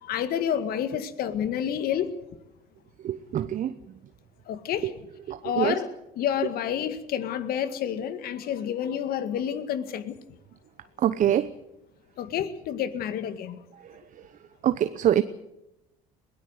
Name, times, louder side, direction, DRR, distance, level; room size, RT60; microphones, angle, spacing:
voice 1, 0.0-2.1 4.5-4.9 5.4-5.9 6.2-10.2 12.2-13.6, left 9 dB, 60° left, 12 dB, 2.0 m, -29 dB
voice 2, 3.0-3.8 4.8-4.9 5.3-5.8 11.0-11.5 13.8-14.3 14.6-15.2, right 10 dB, 45° right, 12 dB, 1.0 m, -25 dB
21.5 x 17.5 x 8.2 m, 0.88 s
supercardioid pair, 80°, 17 cm